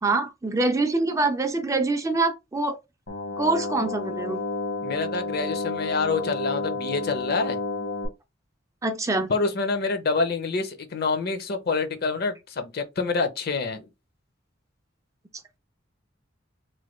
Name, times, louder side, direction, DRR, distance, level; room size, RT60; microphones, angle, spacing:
voice 1, 0.0-2.8 3.4-4.4 8.8-9.3, right 3 dB, 15° right, 0.3 m, -25 dB
sound 1, 3.1-8.1, left 2 dB, 75° left, 1.1 m, -31 dB
voice 2, 4.8-7.6 9.3-13.9, left 4 dB, 55° left, 0.6 m, -27 dB
3.1 x 2.2 x 3.0 m
head